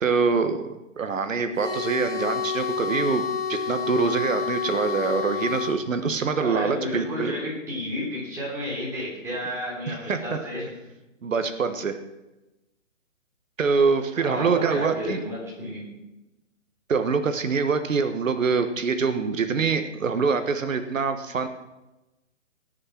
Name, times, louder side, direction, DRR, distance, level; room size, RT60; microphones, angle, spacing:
voice 1, 0.0-3.2 3.5-7.3 9.9-10.4 11.2-12.0 13.6-15.2 16.9-21.5, right 5 dB, 85° right, 9 dB, 1.3 m, -25 dB
sound 1, 1.6-5.8, left 5 dB, 20° left, 3.4 m, -29 dB
voice 2, 6.4-10.7 14.2-15.8, equal, 5° right, -6 dB, 3.4 m, -31 dB
18.0 x 6.6 x 5.8 m, 0.99 s
hypercardioid pair, 160°, 38 cm